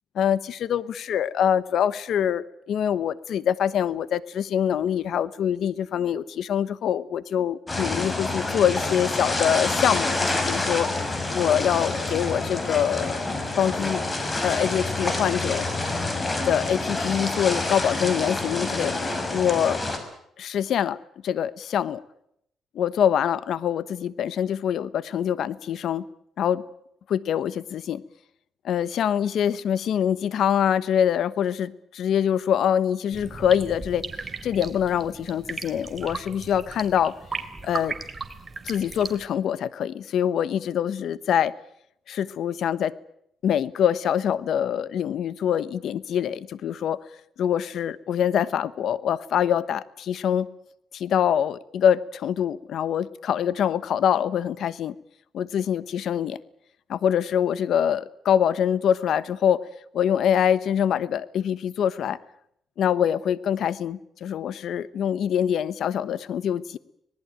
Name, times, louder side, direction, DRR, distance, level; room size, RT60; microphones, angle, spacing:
voice 1, 0.1-10.9 11.3-13.2 13.6-14.0 14.4-15.7 16.4-18.9 19.3-19.8 20.4-21.0 21.2-22.0 22.7-26.0 26.4-26.6 27.1-28.0 28.6-34.0 34.4-37.1 37.6-37.9 38.7-41.5 42.1-42.9 43.4-47.0 47.4-50.5 50.9-54.9 55.3-56.4 56.9-59.6 59.9-62.2 62.8-66.8, left 9 dB, 70° left, 17 dB, 1.2 m, -24 dB
sound 1, 7.7-20.0, left 2 dB, 25° left, 5.7 m, -27 dB
sound 2, 33.1-39.3, right 4 dB, 30° right, 3.2 m, -36 dB
26.0 x 19.5 x 9.0 m, 0.75 s
cardioid pair, 90°, 0 cm